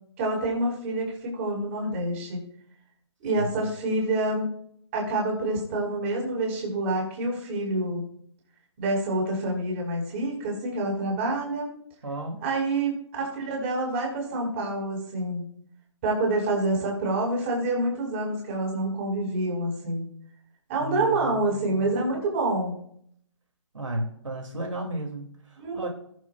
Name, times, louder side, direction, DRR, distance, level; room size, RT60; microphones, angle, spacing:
voice 1, 0.2-2.4 3.2-4.5 4.9-8.0 8.8-11.7 12.4-15.4 16.0-20.0 20.7-22.8 25.6-25.9, right 2 dB, 25° right, -1 dB, 5.1 m, -27 dB
voice 2, 12.0-12.4 20.8-22.0 23.7-25.9, right 1 dB, 80° right, 2 dB, 2.7 m, -34 dB
21.5 x 7.6 x 2.5 m, 0.66 s
hypercardioid pair, 160°, 16 cm